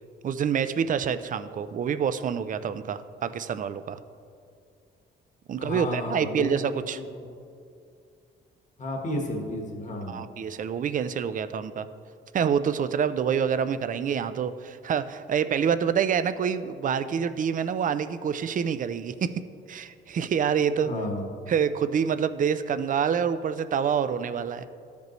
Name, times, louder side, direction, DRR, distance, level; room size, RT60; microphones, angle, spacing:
voice 1, 0.2-4.0 5.5-7.0 10.1-11.9 12.3-19.3 19.7-20.9 21.5-24.6, right 7 dB, 40° right, 12 dB, 0.4 m, -27 dB
voice 2, 5.6-7.2 8.8-10.2 20.8-21.3, left 1 dB, 40° left, 1 dB, 1.3 m, -33 dB
13.5 x 5.2 x 3.1 m, 2.4 s
cardioid pair, 90°, 20 cm